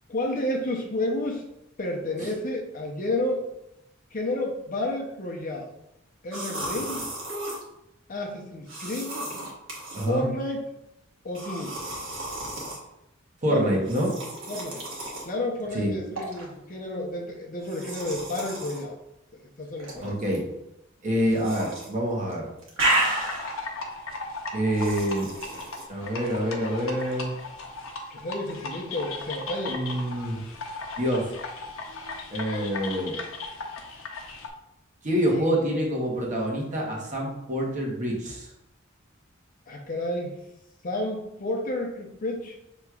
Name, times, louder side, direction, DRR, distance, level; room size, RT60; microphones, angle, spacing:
voice 1, 0.1-1.5 1.8-3.5 4.1-5.7 6.2-7.1 8.1-9.2 10.0-10.7 11.2-11.8 13.5-13.7 14.5-14.8 15.2-19.0 19.6-20.1 28.1-29.8 35.2-35.5 39.7-40.4 40.8-42.6, left 1 dB, 45° left, 0 dB, 0.7 m, -31 dB
sound 1, 6.3-7.6 8.7-10.1 11.4-12.8 13.8-15.3 16.2-16.4 17.6-18.8 19.8-20.4 21.3-21.9 22.2-23.6 24.7-25.8, right 1 dB, 70° right, 1.2 m, -32 dB
voice 2, 9.9-10.3 13.4-14.1 15.7-15.9 20.0-20.4 21.0-22.5 24.5-25.3 25.9-27.3 29.7-30.4 31.0-31.3 32.3-33.2 35.0-38.5, equal, 40° right, -2 dB, 1.1 m, -26 dB
sound 2, 23.1-34.5, left 3 dB, 90° left, 0.7 m, -37 dB
6.3 x 3.0 x 2.3 m, 0.84 s
head